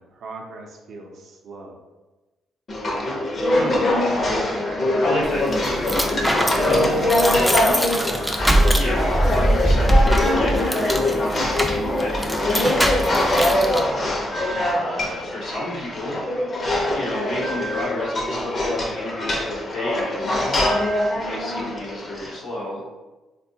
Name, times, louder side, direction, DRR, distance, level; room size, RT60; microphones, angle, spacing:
voice 1, 0.0-1.8 14.4-14.8, right 3 dB, 65° right, 0 dB, 0.5 m, -40 dB
sound 1, 2.7-22.3, left 1 dB, 40° left, 0.6 m, -23 dB
voice 2, 3.5-4.2 5.0-7.0 8.8-14.3 14.7-16.2 16.9-20.5 21.1-22.8, left 1 dB, 80° left, -6 dB, 0.9 m, -32 dB
sound 2, 5.2-13.8, right 1 dB, ahead, 0.3 m, -22 dB
3.5 x 2.2 x 2.7 m, 1.1 s
cardioid pair, 90°, 0 cm